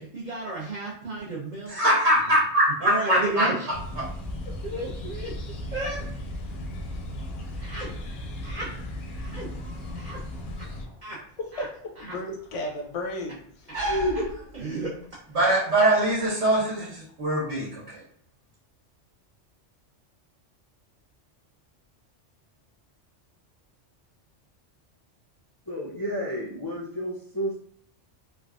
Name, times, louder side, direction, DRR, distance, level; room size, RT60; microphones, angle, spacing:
voice 1, 0.0-1.8 2.8-3.7 4.6-5.3 5.7-6.0 7.6-7.9 8.4-8.7 9.2-9.5 9.9-10.2 11.0-11.2 11.5-11.6 12.0-12.1 14.5-15.0, right 2 dB, 45° right, -6 dB, 0.7 m, -33 dB
voice 2, 1.7-3.5 4.0-4.1 15.3-17.8, right 1 dB, 75° right, -7 dB, 1.3 m, -22 dB
sound 1, 3.7-10.9, left 1 dB, 65° left, 0.7 m, -36 dB
sound 2, 8.1-15.1, right 1 dB, 30° right, 1.1 m, -39 dB
voice 3, 11.4-13.7, left 1 dB, 85° left, 0 dB, 1.0 m, -34 dB
voice 4, 13.7-14.6 25.7-27.7, equal, 30° left, -6 dB, 0.4 m, -31 dB
3.3 x 2.2 x 2.3 m, 0.64 s
omnidirectional pair, 1.2 m